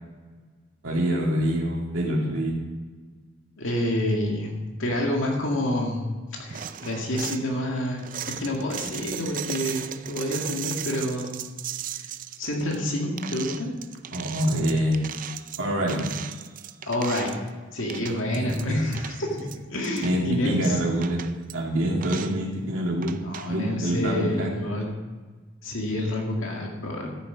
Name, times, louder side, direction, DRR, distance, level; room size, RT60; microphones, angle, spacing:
voice 1, 0.8-2.5 14.1-15.1 15.6-16.0 18.4-18.8 20.0-21.2 21.5-23.2 23.5-24.5, equal, 85° right, -3 dB, 2.6 m, -25 dB
voice 2, 3.6-4.5 4.8-6.0 6.4-11.4 12.4-13.7 16.8-17.3 17.7-19.4 19.7-20.7 23.2-24.9 25.6-27.1, left 1 dB, 80° left, 0 dB, 2.1 m, -28 dB
sound 1, 6.5-7.4 8.0-17.5 17.8-18.7 18.9-20.2 20.6-20.7 21.0-21.5 22.0-22.4 23.0-23.5, right 10 dB, 45° right, 0.4 m, -37 dB
13.0 x 7.6 x 5.1 m, 1.4 s
head